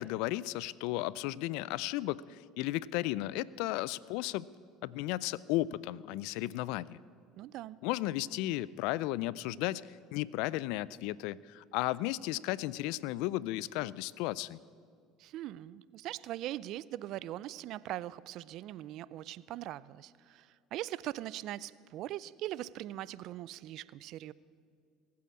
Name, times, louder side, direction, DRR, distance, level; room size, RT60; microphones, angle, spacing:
voice 1, 0.0-4.5 4.8-7.0 7.8-14.6, left 16 dB, 75° left, 21 dB, 0.4 m, -34 dB
voice 2, 7.3-7.8 15.2-24.3, right 14 dB, 65° right, 20 dB, 0.4 m, -41 dB
19.5 x 8.5 x 8.6 m, 2.3 s
supercardioid pair, 80°, 0 cm